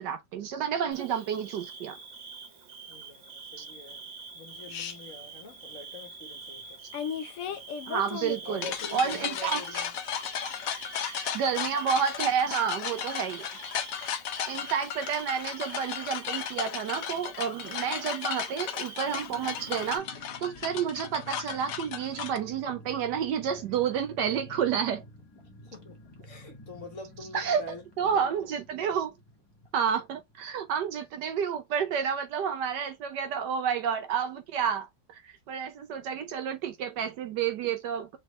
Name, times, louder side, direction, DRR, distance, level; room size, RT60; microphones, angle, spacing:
voice 1, 0.0-2.0 7.9-9.9 11.1-13.4 14.5-25.0 27.3-27.6 28.0-29.1 29.7-38.2, right 7 dB, 70° right, 1.2 m, -30 dB
Bird / Cricket, 0.9-20.0, right 4 dB, 90° right, 2.0 m, -46 dB
voice 2, 2.9-4.0 4.3-6.8 8.4-9.9 25.6-27.8 28.1-28.2, left 3 dB, 45° left, 1.5 m, -45 dB
sound 1, 4.7-4.9 6.9-22.4, left 8 dB, 65° left, 0.8 m, -35 dB
sound 2, 19.1-31.4 31.7-31.8 32.1-32.3, left 1 dB, 15° left, 1.0 m, -50 dB
4.2 x 3.2 x 3.0 m
omnidirectional pair, 2.0 m